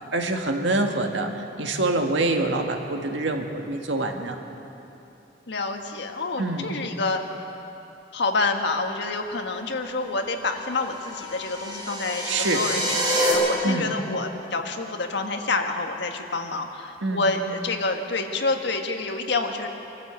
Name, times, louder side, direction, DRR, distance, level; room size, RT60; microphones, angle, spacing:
voice 1, 0.0-4.4 6.4-6.7 12.3-12.6 13.6-13.9 17.0-17.3, right 2 dB, 85° right, 3 dB, 1.8 m, -25 dB
voice 2, 5.5-7.2 8.1-19.7, left 3 dB, 70° left, 4 dB, 1.6 m, -28 dB
sound 1, 10.8-13.3, equal, 25° right, 4.8 m, -27 dB
23.5 x 13.5 x 8.3 m, 3.0 s
head